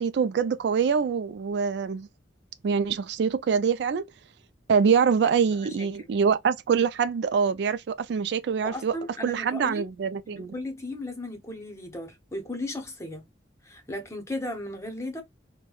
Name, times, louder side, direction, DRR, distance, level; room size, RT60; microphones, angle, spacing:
voice 1, 0.0-2.1 2.6-4.0 4.7-8.9 9.2-10.5, right 6 dB, 65° right, 0.3 m, -24 dB
voice 2, 5.8-6.1 8.6-9.8 10.3-13.2 13.6-15.2, left 1 dB, 15° left, 0.8 m, -36 dB
3.2 x 2.1 x 2.3 m
head